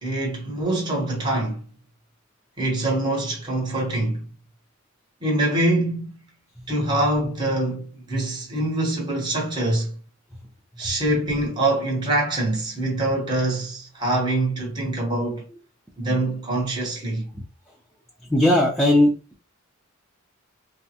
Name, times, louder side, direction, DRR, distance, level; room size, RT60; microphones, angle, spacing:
voice 1, 0.0-1.6 2.6-4.2 5.2-6.2 6.7-10.0 10.8-15.4 16.0-17.3, right 2 dB, 20° right, 1.0 m, -24 dB
voice 2, 18.3-19.1, left 1 dB, ahead, 0.5 m, -18 dB
3.4 x 2.0 x 2.8 m
head